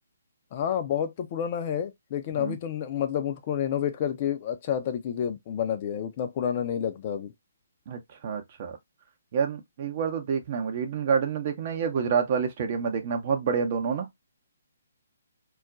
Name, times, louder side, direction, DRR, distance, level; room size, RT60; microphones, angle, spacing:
voice 1, 0.5-7.3, left 9 dB, 35° left, 0.5 m, -29 dB
voice 2, 7.9-8.8 9.3-14.1, right 6 dB, 40° right, 0.7 m, -28 dB
2.3 x 2.1 x 3.7 m
figure-of-eight pair, 135°, 0 cm